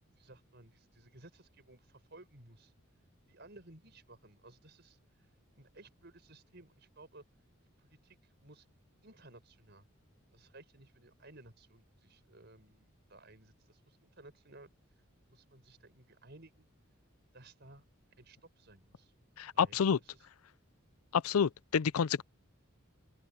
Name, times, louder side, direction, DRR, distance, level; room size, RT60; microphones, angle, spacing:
voice 1, 0.2-2.7 3.3-5.0 5.6-7.2 7.8-8.7 9.0-9.9 10.3-14.7 15.3-16.7 17.3-17.8 18.2-19.1 19.5-20.1, right 2 dB, 50° right, 5.3 m, -57 dB
voice 2, 19.4-20.0 21.1-22.2, left 7 dB, 85° left, 0.5 m, -29 dB
open air
head